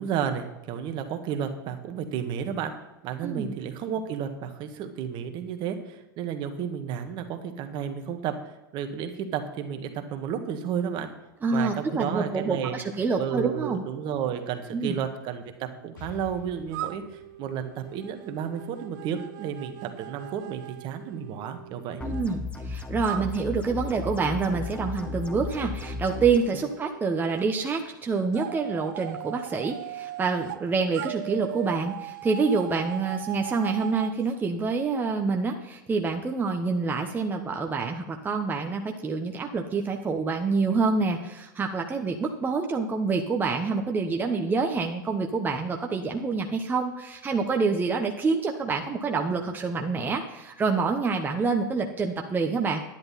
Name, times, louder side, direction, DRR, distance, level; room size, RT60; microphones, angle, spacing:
voice 1, 0.0-2.7 3.0-11.1 11.5-12.8 13.2-22.0 26.5-26.6, right 8 dB, 45° right, 7 dB, 1.5 m, -32 dB
voice 2, 3.2-3.5 11.4-13.8 14.7-15.0 22.0-52.8, right 4 dB, 15° right, 2 dB, 1.1 m, -27 dB
Explosion, 16.0-19.7, left 4 dB, 80° left, 4.6 m, -49 dB
sound 1, 16.7-22.2 23.0-27.5 28.3-30.6 30.9-34.2, right 15 dB, 60° right, 0.6 m, -40 dB
sound 2, 22.0-26.4, left 3 dB, 10° left, 1.1 m, -35 dB
10.5 x 10.5 x 4.2 m, 1.0 s
hypercardioid pair, 105°, 11 cm